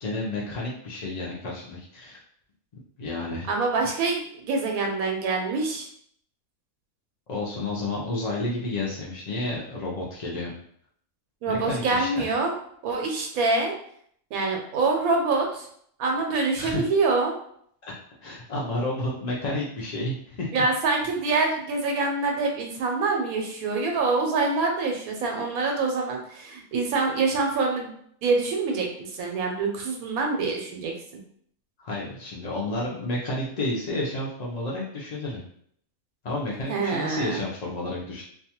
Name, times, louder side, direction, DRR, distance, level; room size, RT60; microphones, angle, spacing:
voice 1, 0.0-2.2 3.0-3.5 7.3-10.5 11.5-12.3 16.6-16.8 17.8-17.9 18.2-20.5 31.8-35.4 36.2-38.2, left 2 dB, 85° left, -4 dB, 0.3 m, -31 dB
voice 2, 3.5-5.9 11.4-12.5 12.8-13.7 14.3-15.7 16.0-17.3 20.5-27.9 28.2-30.9 36.7-37.4, right 3 dB, 90° right, 1 dB, 1.1 m, -25 dB
2.5 x 2.3 x 2.8 m, 0.64 s
omnidirectional pair, 1.5 m